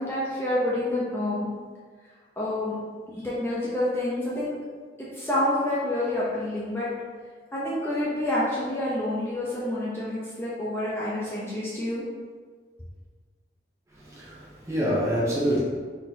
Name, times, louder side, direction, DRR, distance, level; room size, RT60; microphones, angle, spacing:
voice 1, 0.0-1.5 2.4-2.8 3.2-4.5 5.1-6.9 7.5-12.0, left 1 dB, 15° left, -8 dB, 0.7 m, -28 dB
voice 2, 13.9-15.6, equal, 15° right, -6 dB, 0.9 m, -26 dB
4.2 x 4.0 x 2.8 m, 1.5 s
head